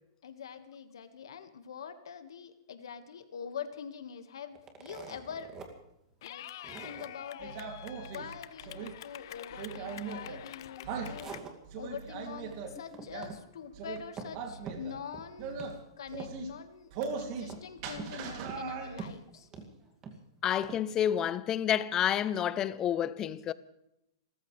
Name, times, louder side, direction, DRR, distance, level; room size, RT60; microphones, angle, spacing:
voice 1, 0.2-5.6 6.2-6.5 6.8-7.6 8.1-11.3 11.8-15.6 16.0-19.5, left 7 dB, 85° left, 1.8 m, -44 dB
sound 1, 4.5-5.7 6.1-6.2 6.6-7.1 10.7-12.0 12.3-12.6 12.9-13.4 13.7-14.4 14.7-15.3 15.6-15.8 16.1-16.6 17.5-18.2 18.5-18.6 19.0-20.2 20.6-20.8, right 5 dB, 20° right, 2.3 m, -45 dB
Clapping / Cheering, 6.2-11.4, left 13 dB, 60° left, 0.6 m, -47 dB
sound 2, 7.4-8.9 9.5-10.4 10.8-11.2 11.6-12.7 13.1-13.3 13.7-14.0 14.3-15.0 15.4-15.7 16.1-16.5 16.9-17.5 17.8-19.1, right 5 dB, 45° right, 2.8 m, -39 dB
voice 2, 20.4-23.5, left 10 dB, 25° left, 0.6 m, -29 dB
30.0 x 14.0 x 3.4 m
hypercardioid pair, 145°, 2 cm